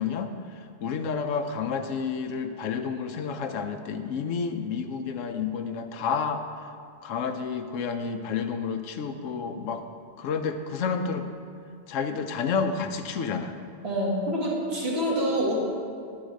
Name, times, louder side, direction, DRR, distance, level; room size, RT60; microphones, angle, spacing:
voice 1, 0.0-6.4 7.0-9.8 10.2-11.3 11.9-13.5, left 5 dB, 85° left, 7 dB, 1.0 m, -30 dB
voice 2, 13.8-15.5, equal, 55° right, -4 dB, 1.8 m, -26 dB
9.3 x 3.9 x 6.3 m, 2.4 s
omnidirectional pair, 1.3 m